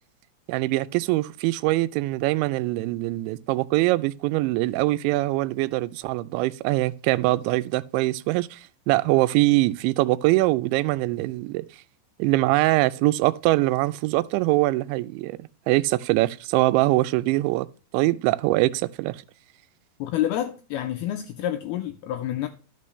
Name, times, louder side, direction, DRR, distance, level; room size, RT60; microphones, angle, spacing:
voice 1, 0.5-8.6 8.9-11.7 12.2-17.7 17.9-19.2, right 19 dB, 90° right, 2.9 m, -23 dB
voice 2, 20.0-22.5, left 12 dB, 85° left, 2.2 m, -28 dB
12.5 x 6.0 x 3.1 m
omnidirectional pair, 5.2 m